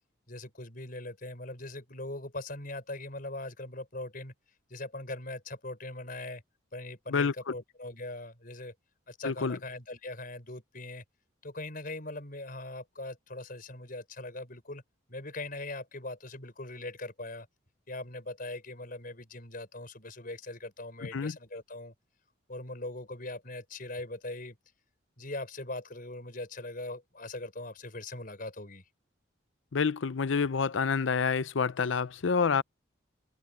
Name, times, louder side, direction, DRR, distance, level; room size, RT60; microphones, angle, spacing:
voice 1, 0.3-4.3 4.7-6.4 6.7-8.7 9.1-11.0 11.4-14.8 15.1-17.5 17.9-21.9 22.5-24.6 25.2-28.8, left 2 dB, 45° left, 5.3 m, -41 dB
voice 2, 9.2-9.6 21.1-21.3 29.7-32.6, left 5 dB, 75° left, 0.6 m, -28 dB
open air
head